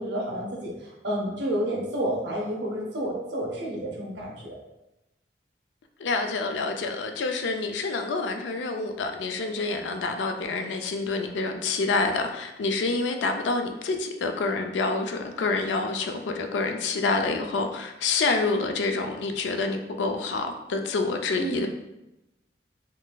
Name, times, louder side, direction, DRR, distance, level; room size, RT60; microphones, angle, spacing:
voice 1, 0.0-4.5 21.4-21.7, right 1 dB, 80° right, -2 dB, 0.6 m, -30 dB
voice 2, 6.0-21.7, left 3 dB, 85° left, 5 dB, 0.4 m, -27 dB
3.7 x 2.5 x 2.2 m, 0.93 s
head